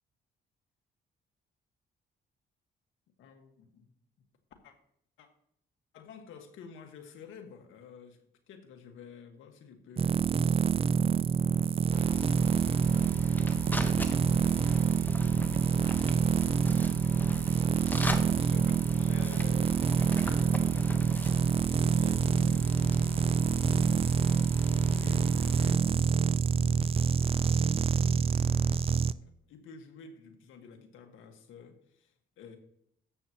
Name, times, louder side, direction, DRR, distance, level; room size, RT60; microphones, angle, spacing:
voice 1, 3.2-3.9 4.6-4.7 5.2-5.3 5.9-8.2 8.5-11.1 11.9-13.2 13.7-14.3 15.4-24.0 24.8-26.8 27.2-32.6, left 6 dB, 85° left, 4 dB, 1.7 m, -51 dB
sound 1, 10.0-29.1, right 6 dB, 30° right, 0.4 m, -26 dB
sound 2, 11.9-25.8, equal, 10° left, 1.1 m, -39 dB
sound 3, 12.8-23.6, right 10 dB, 60° right, 0.9 m, -47 dB
13.0 x 8.4 x 3.0 m, 0.70 s
cardioid pair, 90°, 20 cm